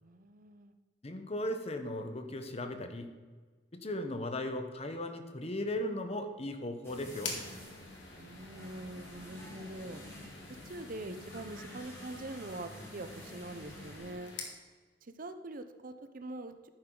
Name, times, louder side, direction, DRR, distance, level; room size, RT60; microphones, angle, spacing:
voice 1, 0.0-0.7 8.2-10.0 10.6-14.3 15.0-16.7, right 2 dB, 50° right, 10 dB, 0.8 m, -44 dB
voice 2, 1.0-3.1 3.7-7.3, left 1 dB, 35° left, 7 dB, 1.0 m, -37 dB
sound 1, 6.8-14.1, left 1 dB, 15° left, 3.1 m, -49 dB
sound 2, 7.2-14.6, left 4 dB, 80° left, 2.0 m, -47 dB
12.0 x 9.3 x 3.9 m, 1.4 s
head